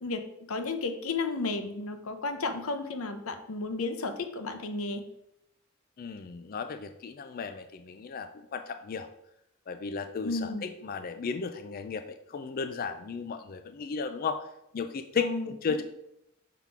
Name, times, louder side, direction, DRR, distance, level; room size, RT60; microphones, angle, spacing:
voice 1, 0.0-5.0 10.2-10.6 15.2-15.8, left 3 dB, 90° left, 7 dB, 0.8 m, -33 dB
voice 2, 6.0-9.1 9.7-14.5 14.7-15.8, left 5 dB, 45° left, 9 dB, 0.4 m, -35 dB
5.8 x 3.6 x 5.9 m, 0.81 s
head